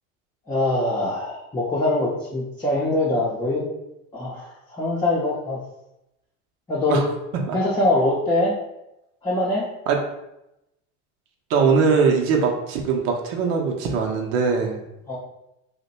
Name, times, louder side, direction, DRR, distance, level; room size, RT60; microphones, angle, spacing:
voice 1, 0.5-3.7 4.1-5.6 6.7-7.1 7.5-8.5 9.2-9.7 15.1-15.2, left 2 dB, 10° left, -6 dB, 0.6 m, -23 dB
voice 2, 11.5-14.8, right 5 dB, 65° right, 1 dB, 0.8 m, -21 dB
2.8 x 2.2 x 4.1 m, 0.88 s
hypercardioid pair, 85°, 40 cm